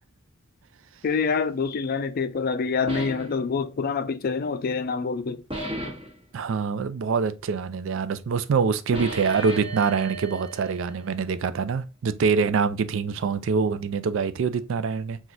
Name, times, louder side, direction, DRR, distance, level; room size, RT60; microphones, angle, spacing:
voice 1, 1.0-5.4, left 5 dB, 50° left, 0.4 m, -26 dB
sound 1, 2.9-3.3 5.5-6.1 8.9-11.4, right 1 dB, 25° right, 1.4 m, -35 dB
voice 2, 6.3-15.2, right 5 dB, 70° right, 0.4 m, -25 dB
5.9 x 2.4 x 2.5 m
head